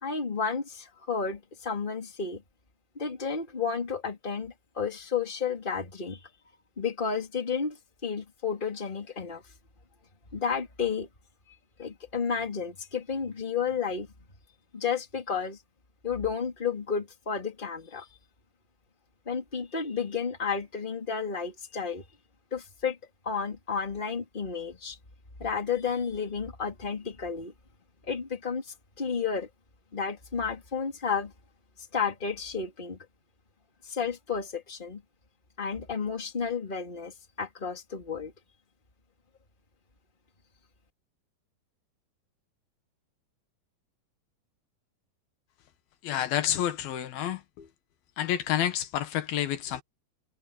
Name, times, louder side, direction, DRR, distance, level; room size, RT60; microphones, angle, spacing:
voice 1, 0.0-2.4 2.9-6.2 6.8-7.8 8.0-9.4 10.3-11.1 11.8-14.1 14.7-15.6 16.0-18.1 19.3-22.0 22.5-23.0 23.2-25.0 25.4-27.5 28.1-29.5 29.9-31.3 31.9-33.0 33.8-35.0 35.6-38.3, left 6 dB, 15° left, 2.8 m, -32 dB
voice 2, 46.0-47.7 48.2-49.8, left 11 dB, 80° left, 3.2 m, -29 dB
omnidirectional pair, 4.2 m